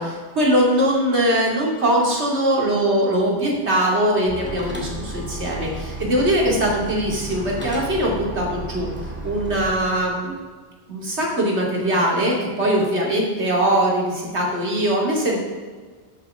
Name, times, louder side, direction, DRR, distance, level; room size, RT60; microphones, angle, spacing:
voice 1, 0.0-8.9 9.2-10.3 10.9-15.4, right 1 dB, 75° right, -2 dB, 2.7 m, -21 dB
sound 1, 4.3-9.7, right 2 dB, 10° right, 1.9 m, -33 dB
12.0 x 8.8 x 3.6 m, 1.4 s
omnidirectional pair, 1.1 m